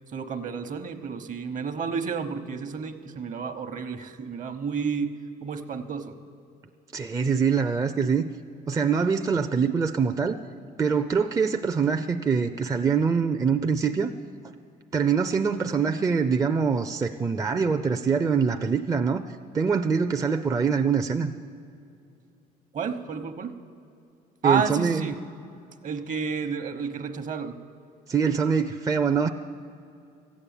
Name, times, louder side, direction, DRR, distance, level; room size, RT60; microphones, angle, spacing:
voice 1, 0.1-5.1 5.4-6.2 22.7-23.6 24.4-25.1 25.8-27.6, right 6 dB, 50° right, 9 dB, 1.0 m, -30 dB
voice 2, 6.9-8.3 8.7-10.4 10.8-14.1 14.9-19.2 19.5-21.3 24.4-25.1 28.1-29.3, right 6 dB, 20° right, 6 dB, 0.4 m, -24 dB
14.0 x 8.4 x 8.9 m, 2.5 s
cardioid pair, 110°, 17 cm